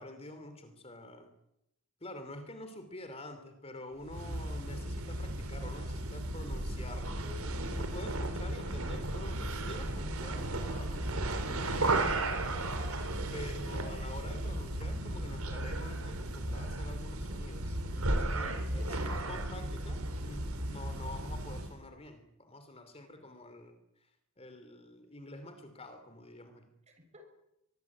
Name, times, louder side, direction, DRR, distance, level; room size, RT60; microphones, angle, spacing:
voice 1, 0.0-1.3 2.0-7.1 7.7-12.7 13.3-24.1 24.4-26.7, left 1 dB, 30° left, 9 dB, 3.0 m, -47 dB
sound 1, 4.0-21.8, right 1 dB, 80° right, 3.9 m, -35 dB
voice 2, 7.2-7.9 13.0-13.2 18.4-19.2 26.9-27.2, left 1 dB, 30° right, 6 dB, 6.3 m, -51 dB
23.5 x 22.0 x 8.7 m, 0.84 s
head